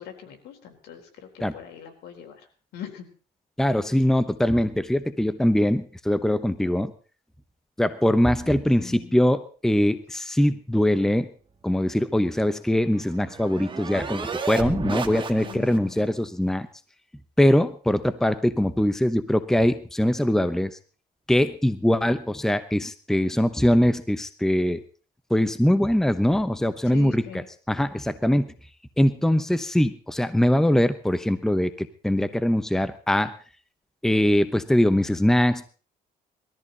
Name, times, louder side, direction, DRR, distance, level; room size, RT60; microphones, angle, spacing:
voice 1, 0.0-2.4 2.7-3.1 8.4-9.2 15.4-16.1 26.8-27.5, left 9 dB, 75° left, 4 dB, 4.0 m, -42 dB
voice 2, 3.6-6.9 7.8-11.3 11.6-16.7 17.4-20.7 21.3-24.8 25.3-28.5 29.0-33.3 34.0-35.7, left 1 dB, 5° left, 12 dB, 0.9 m, -22 dB
sound 1, 12.4-16.0, right 5 dB, 30° right, 1.9 m, -33 dB
20.5 x 14.0 x 4.0 m, 0.38 s
cardioid pair, 110°, 17 cm